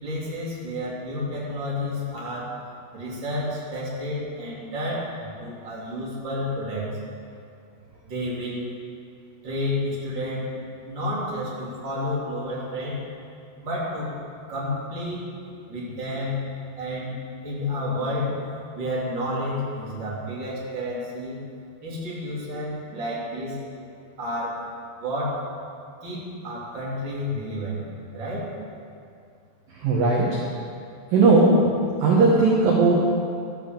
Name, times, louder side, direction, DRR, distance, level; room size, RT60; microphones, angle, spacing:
voice 1, 0.0-2.5 2.9-6.9 8.0-8.6 9.4-10.5 10.8-13.0 13.6-14.1 14.5-15.3 15.7-16.4 16.8-17.2 17.4-18.4 18.7-21.4 21.8-23.6 24.2-24.6 25.0-25.4 26.0-27.8 28.1-28.5, left 1 dB, 30° right, -6 dB, 3.0 m, -30 dB
voice 2, 29.7-30.4 31.1-31.7 32.0-33.0, right 3 dB, 60° right, -4 dB, 2.5 m, -18 dB
12.5 x 9.2 x 7.6 m, 2.5 s
omnidirectional pair, 5.6 m